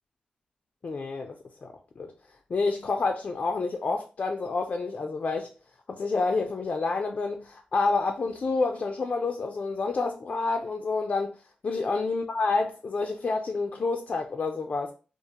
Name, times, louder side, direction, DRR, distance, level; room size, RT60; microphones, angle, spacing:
voice 1, 0.8-1.3 1.6-1.7 2.0-2.1 2.5-5.5 5.9-11.4 11.6-14.9, left 3 dB, 50° left, 0.3 m, -28 dB
2.4 x 2.2 x 2.7 m
cardioid pair, 55°, 3 cm